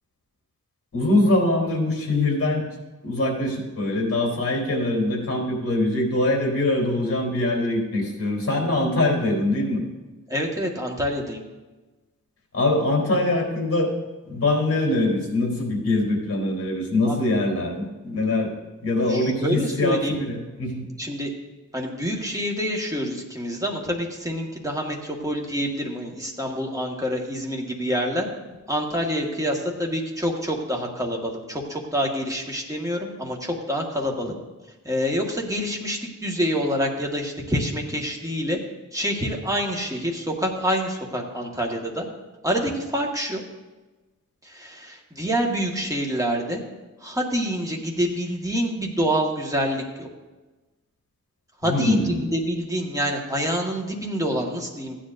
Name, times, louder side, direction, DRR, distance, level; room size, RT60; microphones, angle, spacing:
voice 1, 0.9-2.6 3.0-9.8 12.5-13.9 14.3-18.5 18.8-20.9 51.6-52.3, left 2 dB, 50° left, 0 dB, 3.5 m, -23 dB
voice 2, 10.3-11.4 17.0-17.2 19.1-20.2 21.0-21.3 21.7-28.3 28.7-34.3 34.8-38.6 38.9-42.0 42.4-43.4 44.4-46.6 47.0-50.1 51.6-55.0, equal, 10° right, -1 dB, 1.6 m, -27 dB
15.0 x 9.9 x 2.6 m, 1.2 s
wide cardioid pair, 110°, 31 cm